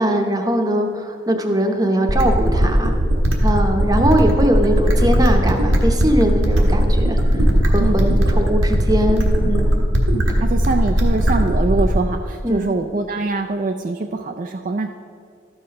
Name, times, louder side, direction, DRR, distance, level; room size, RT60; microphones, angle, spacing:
voice 1, 0.0-3.0 3.4-9.8 12.4-12.7, right 1 dB, 20° right, 4 dB, 0.8 m, -21 dB
sound 1, 2.1-12.1, equal, 85° right, 1.4 m, -17 dB
voice 2, 7.8-8.3 10.4-14.9, right 3 dB, 40° right, 5 dB, 0.3 m, -23 dB
13.0 x 5.8 x 5.2 m, 2.3 s
head